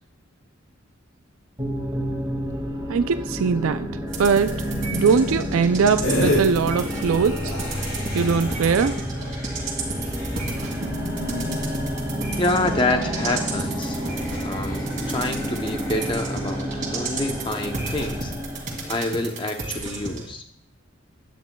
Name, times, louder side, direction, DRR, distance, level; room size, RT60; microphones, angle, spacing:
sound 1, 1.6-19.0, equal, 20° right, 1.9 m, -30 dB
voice 1, 2.9-3.9 4.2-7.5 8.1-9.0, right 5 dB, 85° right, 10 dB, 0.4 m, -21 dB
sound 2, 4.1-20.3, right 3 dB, 40° right, 2.2 m, -34 dB
sound 3, 6.0-6.4 6.7-16.6 17.1-17.4, left 1 dB, 60° left, 4.0 m, -32 dB
voice 2, 12.4-14.0 14.4-18.3 18.9-20.4, left 2 dB, 25° left, 5 dB, 0.7 m, -27 dB
15.5 x 10.5 x 2.3 m, 0.75 s
head